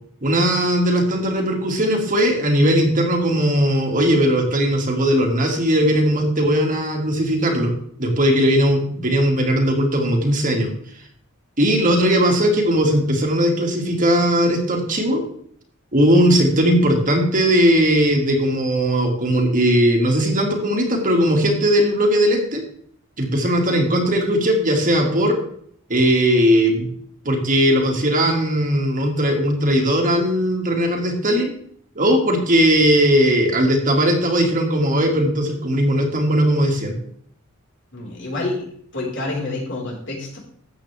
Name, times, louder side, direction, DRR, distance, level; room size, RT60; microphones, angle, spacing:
voice 1, 0.2-7.7 8.0-10.7 11.6-15.2 15.9-22.6 23.2-25.4 25.9-26.9 27.2-31.5 32.0-37.0, equal, 40° right, 1 dB, 2.3 m, -18 dB
voice 2, 37.9-38.6 38.9-40.4, left 2 dB, 60° left, -2 dB, 4.6 m, -27 dB
14.0 x 8.6 x 3.5 m, 0.63 s
head